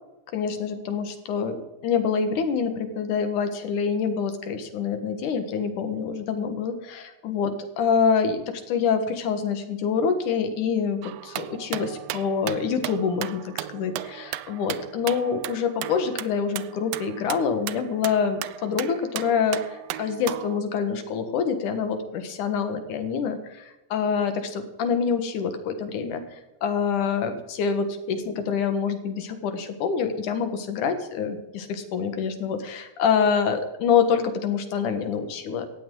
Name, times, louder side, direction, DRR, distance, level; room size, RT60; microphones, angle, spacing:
voice 1, 0.3-35.7, left 6 dB, 80° left, 8 dB, 3.1 m, -26 dB
sound 1, 11.0-20.6, right 14 dB, 85° right, 1.4 m, -36 dB
18.5 x 13.5 x 3.9 m, 0.99 s
omnidirectional pair, 3.5 m